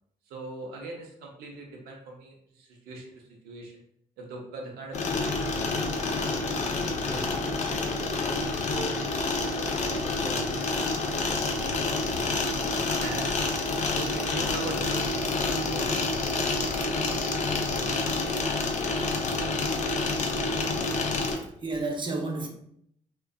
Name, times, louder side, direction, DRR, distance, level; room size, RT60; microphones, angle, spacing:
voice 1, 0.3-3.7 4.2-8.1 8.7-8.9 9.3-12.3 12.8-13.5 13.9-16.6, right 2 dB, 85° right, 0.6 m, -42 dB
sound 1, 4.9-21.4, left 3 dB, 50° left, 0.4 m, -28 dB
voice 2, 21.4-22.5, right 3 dB, 30° right, 0.6 m, -31 dB
2.5 x 2.2 x 2.2 m
supercardioid pair, 60°, 16 cm